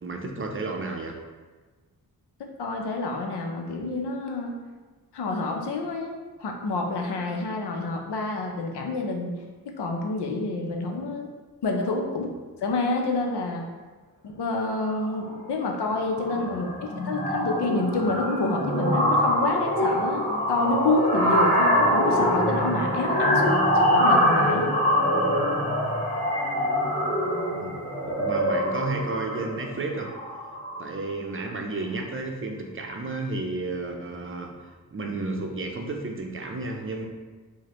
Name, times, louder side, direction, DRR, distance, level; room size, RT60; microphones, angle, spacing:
voice 1, 0.0-1.2 16.3-16.8 27.5-27.8 28.2-30.1 30.8-37.0, right 3 dB, 35° right, 2 dB, 0.5 m, -32 dB
voice 2, 2.6-4.5 5.1-6.1 6.4-9.3 9.8-11.3 11.6-12.3 12.6-13.6 14.2-16.7 17.1-24.7, left 2 dB, 90° left, 2 dB, 0.6 m, -28 dB
sound 1, 15.0-15.3 15.6-15.8 16.1-31.0, equal, 20° left, 1.0 m, -24 dB
4.8 x 2.1 x 2.9 m, 1.3 s
cardioid pair, 65°, 39 cm